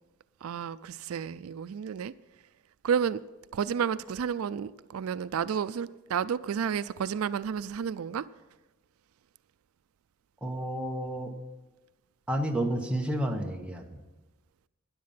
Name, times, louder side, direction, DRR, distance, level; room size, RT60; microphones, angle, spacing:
voice 1, 0.4-2.1 2.8-3.2 3.5-8.3, right 7 dB, 80° right, 0.4 m, -31 dB
voice 2, 10.4-11.3 12.3-14.0, right 1 dB, 5° right, 1.1 m, -31 dB
12.5 x 10.5 x 5.7 m
head